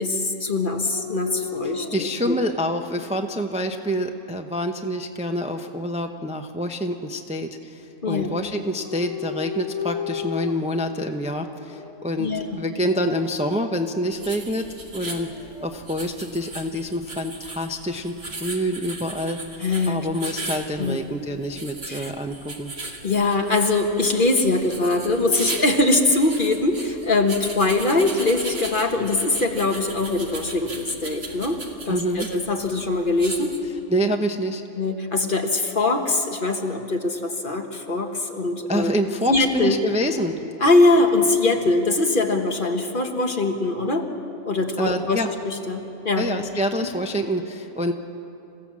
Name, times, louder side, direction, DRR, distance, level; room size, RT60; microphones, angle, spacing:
voice 1, 0.0-2.4 8.0-8.3 12.2-12.5 19.6-20.0 20.8-21.0 21.9-22.1 23.0-31.6 31.9-33.5 34.8-38.9 39.3-39.8 40.6-44.1 44.5-46.3, left 2 dB, 40° left, 3 dB, 1.6 m, -22 dB
Dog, 0.8-3.1 3.7-4.4 8.6-10.9 11.7-12.1 14.7-16.0, left 8 dB, 70° left, 1.4 m, -35 dB
voice 2, 1.6-12.3 12.6-14.7 14.9-15.3 15.6-19.4 19.9-22.7 31.9-32.3 33.9-34.6 38.7-40.4 44.8-45.3 46.2-47.9, equal, 5° right, 4 dB, 0.8 m, -27 dB
sound 1, 14.1-33.6, right 2 dB, 50° right, 2.1 m, -37 dB
27.0 x 16.0 x 7.5 m, 2.8 s
omnidirectional pair, 1.4 m